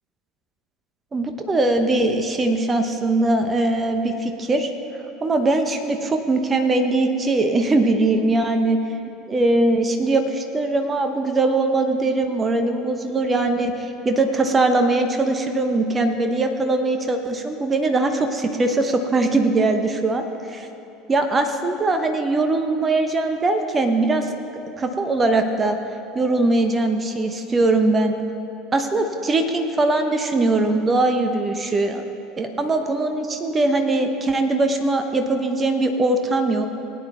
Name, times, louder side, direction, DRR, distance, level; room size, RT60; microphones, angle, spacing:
voice 1, 1.1-4.7 5.2-8.8 9.3-20.2 20.5-20.7 21.1-24.3 24.8-25.8 26.1-28.1 28.7-32.0 32.4-36.7, right 2 dB, 20° right, 6 dB, 1.0 m, -21 dB
20.0 x 9.2 x 3.5 m, 2.9 s
figure-of-eight pair, 70°, 0 cm